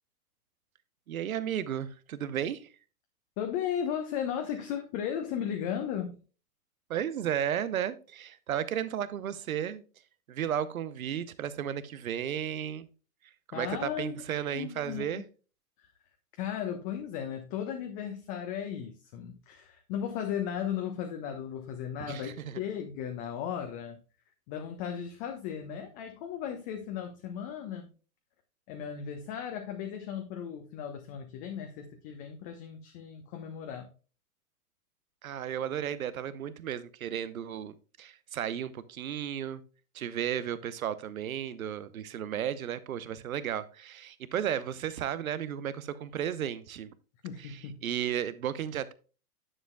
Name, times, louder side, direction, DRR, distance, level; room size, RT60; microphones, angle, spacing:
voice 1, 1.1-2.7 6.9-9.8 10.3-12.9 13.5-15.2 22.1-22.6 35.2-39.6 39.9-46.9 47.4-48.9, right 9 dB, 65° right, 0.9 m, -34 dB
voice 2, 3.4-6.2 13.5-14.2 14.5-15.2 15.8-15.9 16.4-24.0 24.5-27.9 28.7-33.9 47.2-47.8, left 8 dB, 35° left, 1.1 m, -36 dB
10.0 x 7.3 x 2.3 m
figure-of-eight pair, 105°, 45 cm